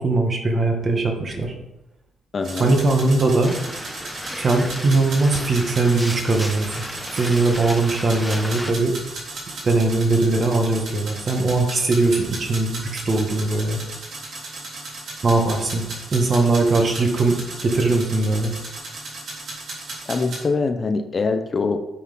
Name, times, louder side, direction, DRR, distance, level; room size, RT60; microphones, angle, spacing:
voice 1, 0.0-1.5 2.6-3.5 4.4-9.0 9.6-13.8 15.2-15.8 16.1-18.5, right 2 dB, 40° right, 3 dB, 1.6 m, -20 dB
voice 2, 2.3-2.7 20.1-21.8, left 4 dB, 40° left, 7 dB, 0.7 m, -23 dB
sound 1, 2.4-20.4, right 2 dB, 65° right, 3.0 m, -35 dB
sound 2, 3.4-8.7, equal, ahead, 1.0 m, -34 dB
8.4 x 4.1 x 5.6 m, 0.94 s
cardioid pair, 90°, 0 cm